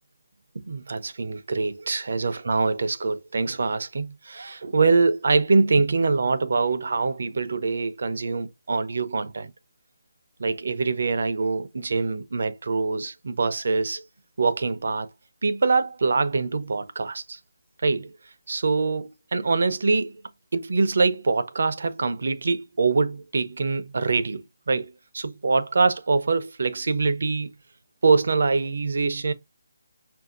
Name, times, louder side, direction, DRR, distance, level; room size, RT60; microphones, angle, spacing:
voice 1, 0.7-9.5 10.4-14.0 14.4-15.1 15.4-17.4 17.8-18.1 18.5-20.1 20.5-27.5 28.0-29.3, right 4 dB, 65° right, 0.6 m, -24 dB
5.6 x 2.6 x 2.5 m
hypercardioid pair, 170°, 0 cm